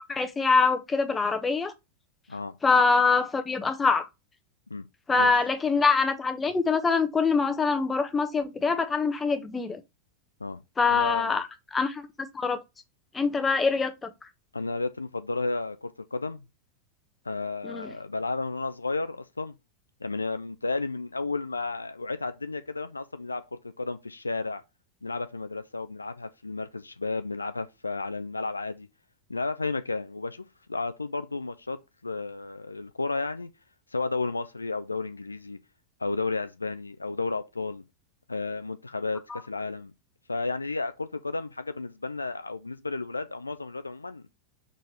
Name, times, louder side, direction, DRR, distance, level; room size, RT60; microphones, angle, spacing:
voice 1, 0.1-1.7 2.6-4.1 5.1-9.8 10.8-11.4 11.7-12.6 13.1-14.1 17.6-17.9 39.3-39.4, left 4 dB, 15° left, 1.1 m, -24 dB
voice 2, 10.9-11.4 14.5-16.4 17.3-19.5 20.0-24.6 25.0-28.9 29.3-33.5 33.9-35.6 36.0-37.8 38.3-39.9 40.3-44.3, left 3 dB, 80° left, 0.5 m, -32 dB
6.3 x 4.5 x 3.3 m
figure-of-eight pair, 90°, 0 cm